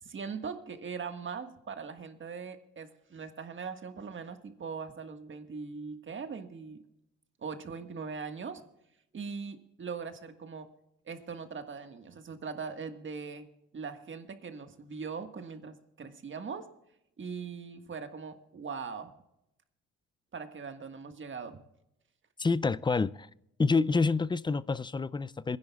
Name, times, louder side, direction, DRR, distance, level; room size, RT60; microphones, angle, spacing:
voice 1, 0.0-6.8 7.4-8.6 9.1-10.7 11.0-13.5 13.7-16.7 17.2-19.1 20.3-21.6, right 5 dB, 40° right, 1.6 m, -40 dB
voice 2, 22.4-23.3 23.6-25.6, left 4 dB, 15° left, 0.4 m, -27 dB
26.5 x 10.5 x 2.4 m
cardioid pair, 90°, 30 cm